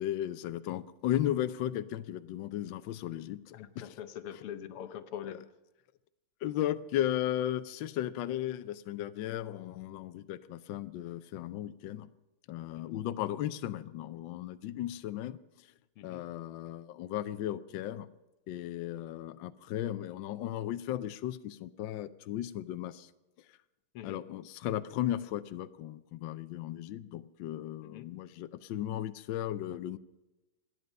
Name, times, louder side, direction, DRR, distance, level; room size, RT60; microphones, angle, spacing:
voice 1, 0.0-3.8 6.4-12.1 12.5-15.4 16.0-18.1 18.5-23.1 24.0-30.0, left 12 dB, 70° left, 12 dB, 1.3 m, -35 dB
voice 2, 3.5-5.5 12.9-13.1 16.0-16.3 23.9-24.3 27.8-28.1, left 10 dB, 85° left, 11 dB, 1.9 m, -43 dB
27.5 x 9.5 x 5.4 m, 1.0 s
omnidirectional pair, 2.4 m